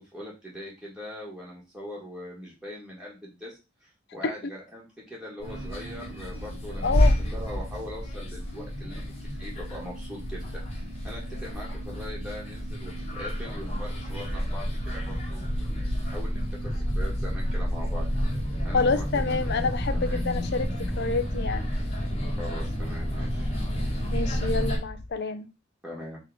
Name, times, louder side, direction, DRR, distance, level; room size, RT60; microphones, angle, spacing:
voice 1, 0.0-7.0 7.3-9.0 9.4-18.1 18.6-19.7 20.0-20.2 22.4-23.5 25.8-26.2, equal, 5° right, 1.4 m, -41 dB
sound 1, 5.4-24.8, equal, 30° left, 1.4 m, -29 dB
voice 2, 6.8-7.2 18.7-21.7 24.1-25.5, left 4 dB, 55° left, 0.6 m, -28 dB
sound 2, 23.8-25.1, left 1 dB, 30° right, 0.9 m, -41 dB
3.7 x 3.0 x 4.5 m
head